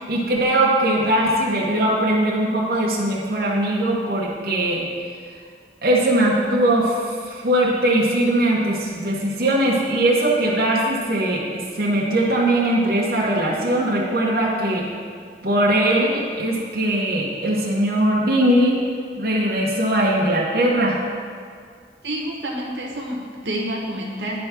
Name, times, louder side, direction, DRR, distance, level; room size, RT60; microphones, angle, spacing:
voice 1, 0.0-4.9 5.8-14.9 15.4-18.8 19.2-21.0, right 1 dB, 55° right, -4 dB, 1.1 m, -20 dB
voice 2, 22.0-24.5, right 1 dB, 85° right, -2 dB, 1.2 m, -28 dB
10.0 x 3.4 x 5.9 m, 2.1 s
head